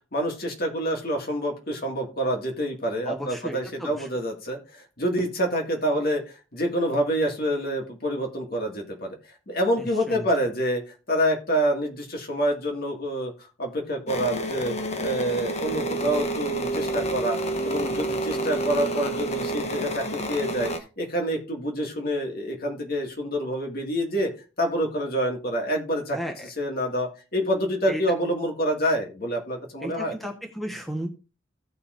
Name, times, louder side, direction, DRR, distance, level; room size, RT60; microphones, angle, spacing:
voice 1, 0.1-9.2 9.5-13.3 13.6-14.7 15.0-17.4 17.6-20.7 21.0-24.3 24.6-26.2 26.6-30.2, equal, 50° left, 2 dB, 2.1 m, -27 dB
voice 2, 3.0-4.1 10.1-10.2 26.1-26.5 27.9-28.0 29.8-31.1, right 1 dB, ahead, 2 dB, 1.2 m, -34 dB
sound 1, 14.1-20.8, right 1 dB, 35° left, 0.9 m, -29 dB
16.5 x 5.6 x 2.6 m, 0.32 s
head